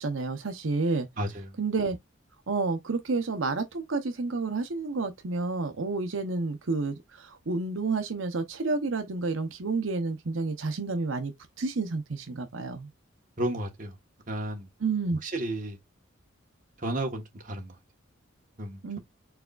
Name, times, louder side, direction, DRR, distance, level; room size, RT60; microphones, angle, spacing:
voice 1, 0.0-1.1 1.6-2.0 2.5-11.3 11.6-12.9 14.8-15.2 18.8-19.0, right 3 dB, 80° right, 0.8 m, -30 dB
voice 2, 1.2-1.6 13.4-14.0 14.3-14.7 15.2-15.8 16.8-17.8 18.6-19.0, right 1 dB, 40° right, 1.3 m, -33 dB
4.7 x 4.2 x 2.4 m
head